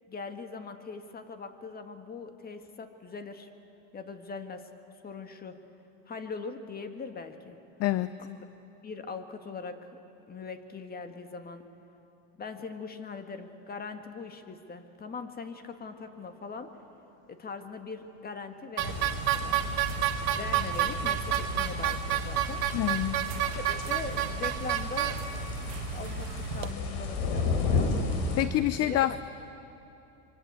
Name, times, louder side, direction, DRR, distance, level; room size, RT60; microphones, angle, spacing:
voice 1, 0.1-3.5 3.9-4.7 5.0-5.6 6.1-7.6 8.2-8.5 8.8-10.0 10.3-11.7 12.4-16.8 17.3-19.7 20.3-22.7 23.6-28.0 28.7-29.2, left 4 dB, 25° left, 8 dB, 1.8 m, -41 dB
voice 2, 7.8-8.1 22.7-23.2 28.4-29.2, left 14 dB, 40° left, 14 dB, 0.6 m, -26 dB
sound 1, 18.8-28.4, left 4 dB, 75° left, 4.2 m, -33 dB
sound 2, 18.8-26.7, right 12 dB, 65° right, 1.6 m, -30 dB
26.0 x 24.5 x 8.3 m, 2.9 s
supercardioid pair, 125°, 39 cm